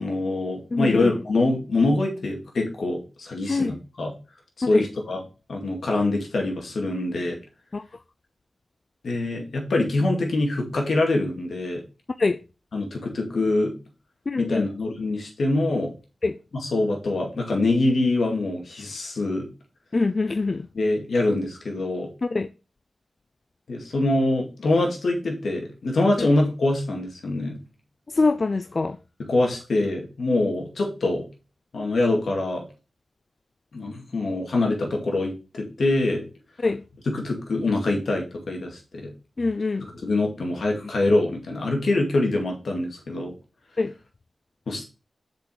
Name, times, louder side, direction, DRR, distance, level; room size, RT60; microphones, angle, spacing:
voice 1, 0.0-4.1 4.7-5.2 5.5-7.4 9.0-11.8 12.7-13.7 14.4-15.9 16.6-19.5 20.7-22.1 23.7-27.6 29.3-31.2 31.7-32.7 33.7-36.2 37.1-39.1 40.0-43.3 44.7-44.8, left 2 dB, 80° left, 2.2 m, -24 dB
voice 2, 0.7-1.1 3.5-3.7 4.7-4.8 7.7-7.8 12.2-12.4 14.3-14.7 16.2-16.4 19.9-20.7 22.3-22.5 26.2-26.3 28.1-29.0 36.6-36.8 39.4-39.9 43.8-43.9, left 3 dB, 45° left, 0.4 m, -24 dB
6.9 x 5.1 x 4.8 m
wide cardioid pair, 80°, 0 cm